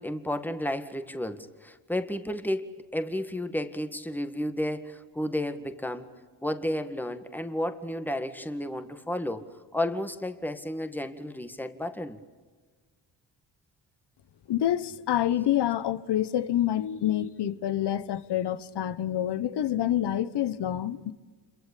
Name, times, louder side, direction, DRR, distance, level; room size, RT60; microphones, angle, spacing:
voice 1, 0.0-6.1 6.4-9.4 9.7-12.2, left 1 dB, 5° left, 1.9 m, -32 dB
voice 2, 14.5-21.1, left 11 dB, 65° left, 1.3 m, -27 dB
27.5 x 24.0 x 8.5 m
cardioid pair, 80°, 44 cm